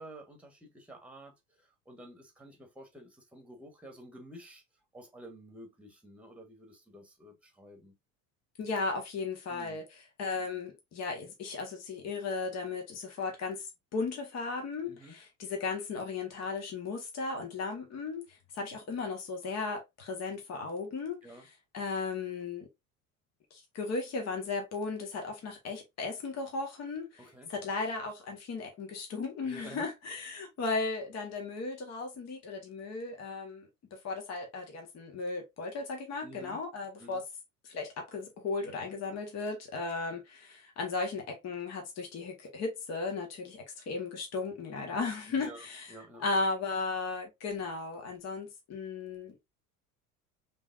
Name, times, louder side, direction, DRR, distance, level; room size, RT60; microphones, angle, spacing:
voice 1, 0.0-4.6 4.9-7.9 9.5-9.8 14.8-15.1 21.2-21.5 27.2-27.5 29.4-29.9 36.2-36.6 37.0-37.2 45.3-46.2, right 1 dB, 5° right, 1.5 m, -50 dB
voice 2, 8.6-9.8 10.2-21.2 21.7-22.7 23.5-27.2 27.5-37.2 37.6-49.3, left 4 dB, 35° left, 1.6 m, -36 dB
5.3 x 3.1 x 2.6 m
figure-of-eight pair, 65°, 43 cm